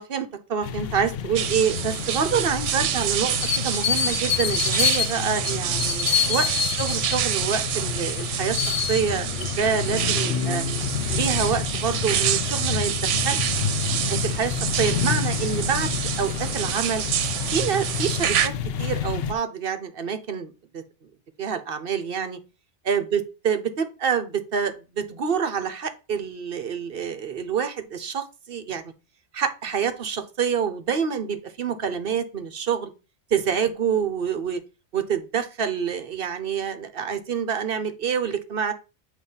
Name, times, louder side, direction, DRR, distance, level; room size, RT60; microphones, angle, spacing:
voice 1, 0.0-10.6 11.1-13.6 14.1-17.0 17.5-18.5 18.8-20.8 21.4-22.4 22.8-28.8 29.3-32.9 33.3-34.6 34.9-38.7, right 7 dB, 55° right, 10 dB, 0.9 m, -27 dB
sound 1, 0.6-19.3, left 8 dB, 65° left, 0.7 m, -28 dB
sound 2, 1.4-18.5, right 10 dB, 85° right, 1.0 m, -28 dB
8.3 x 2.9 x 5.5 m, 0.30 s
omnidirectional pair, 1.2 m